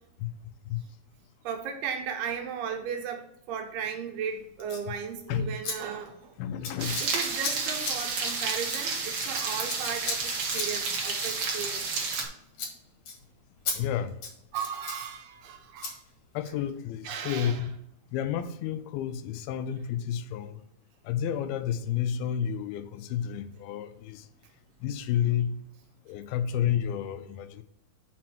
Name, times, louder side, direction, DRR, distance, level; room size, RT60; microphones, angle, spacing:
voice 1, 1.4-6.3 7.0-11.9 14.5-16.0 17.0-17.7, right 7 dB, 80° right, 3.1 m, -36 dB
Scissors, 4.6-4.9 5.6-5.8 6.0-6.3 6.6-12.3 12.5-12.7 13.1-13.2 13.7-13.8 14.1-15.0 15.8-15.9, left 4 dB, 50° left, 2.2 m, -36 dB
voice 2, 6.4-7.0 13.7-14.2 16.3-17.8 18.1-20.6 21.1-24.3 24.8-25.6 26.1-27.6, left 9 dB, 85° left, 2.4 m, -30 dB
sound 1, 6.8-12.2, right 4 dB, 60° right, 1.6 m, -31 dB
6.0 x 5.2 x 6.1 m
omnidirectional pair, 4.5 m